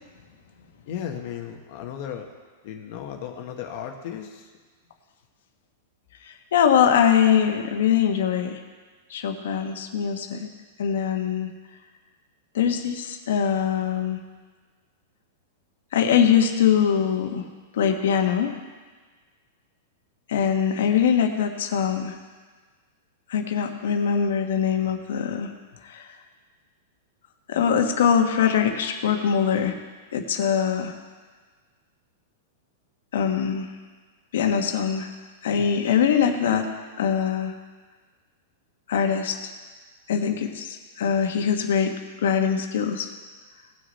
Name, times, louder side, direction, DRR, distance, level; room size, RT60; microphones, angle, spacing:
voice 1, 0.9-2.3 2.6-4.5, left 9 dB, 45° left, 3 dB, 1.1 m, -35 dB
voice 2, 6.5-8.6 9.1-10.5 10.8-11.5 12.5-14.2 15.9-17.4 17.7-18.5 20.3-22.1 23.3-25.5 25.9-26.1 27.5-29.7 30.1-30.9 33.1-33.7 34.3-35.1 35.4-36.7 37.0-37.5 38.9-39.4 40.1-41.9 42.2-43.1, left 8 dB, 75° left, 4 dB, 1.3 m, -22 dB
18.5 x 6.3 x 4.2 m, 1.4 s
supercardioid pair, 165°, 0 cm